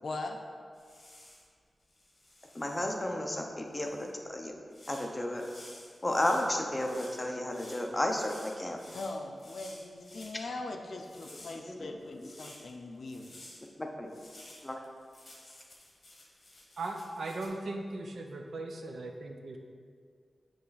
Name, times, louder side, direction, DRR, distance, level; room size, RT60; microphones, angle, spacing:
voice 1, 0.0-0.4 8.9-13.4, left 2 dB, 60° left, 3 dB, 0.5 m, -41 dB
sound 1, 0.7-1.5 1.9-3.0 3.8-4.1 4.7-10.4 10.9-12.7 13.0-13.7 14.1-17.5, left 1 dB, 35° left, 1.3 m, -53 dB
voice 2, 2.5-4.5 4.9-5.4 6.0-8.8 11.3-11.4 11.8-11.9 13.8-14.1 14.6-14.8, left 1 dB, 15° left, 1 dB, 0.7 m, -32 dB
voice 3, 16.8-19.6, right 2 dB, 70° right, 3 dB, 0.6 m, -38 dB
8.3 x 3.2 x 4.0 m, 2.1 s
wide cardioid pair, 120°, 0 cm